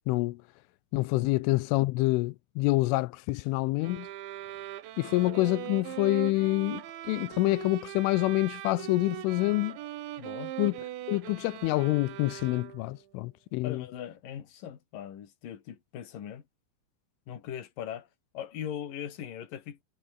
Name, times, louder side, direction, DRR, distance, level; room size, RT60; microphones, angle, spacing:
voice 1, 0.1-0.4 0.9-4.1 5.0-9.8 10.6-10.7 11.1-13.8, left 20 dB, 85° left, 3.3 m, -27 dB
sound 1, 3.8-13.0, right 13 dB, 75° right, 3.8 m, -40 dB
voice 2, 10.2-10.5 13.6-16.4 17.3-18.1 18.3-19.8, left 9 dB, 50° left, 3.9 m, -40 dB
omnidirectional pair, 5.5 m